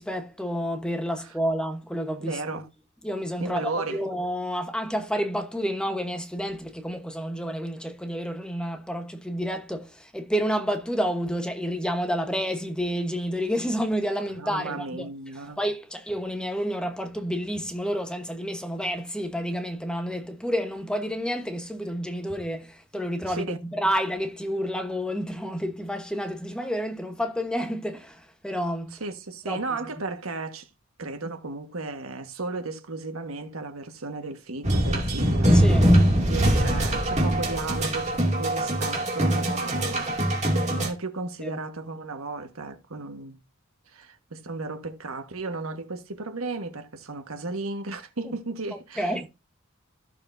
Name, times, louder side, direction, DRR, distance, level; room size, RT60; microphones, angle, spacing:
voice 1, 0.0-2.4 3.0-15.1 15.6-29.0 29.5-29.6 35.5-35.9 41.4-41.5 48.7-49.3, equal, 5° left, 1.1 m, -29 dB
voice 2, 2.2-2.7 3.4-4.0 14.3-15.6 23.3-23.6 29.0-30.7 31.0-35.6 36.0-40.1 40.7-43.4 43.9-49.2, right 3 dB, 85° right, 1.5 m, -34 dB
sound 1, 34.6-40.9, equal, 35° right, 2.5 m, -22 dB
14.0 x 6.8 x 2.7 m
head